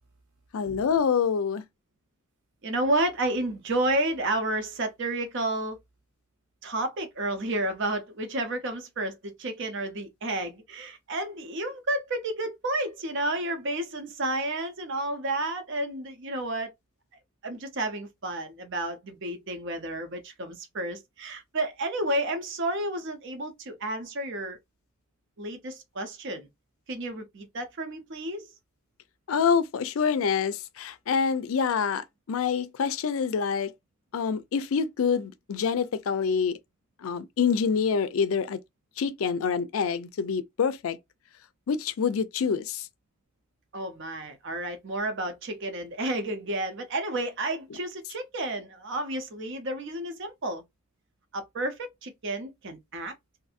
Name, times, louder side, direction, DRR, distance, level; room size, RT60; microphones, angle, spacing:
voice 1, 0.5-1.6 29.3-33.7 34.1-36.6 37.0-38.6 39.0-41.0 41.7-42.9, left 6 dB, 70° left, 0.4 m, -26 dB
voice 2, 2.6-5.8 6.6-16.7 17.4-24.6 25.4-26.5 26.9-28.5 43.7-50.6 51.3-53.1, right 1 dB, 55° right, 0.6 m, -31 dB
2.6 x 2.6 x 2.4 m
head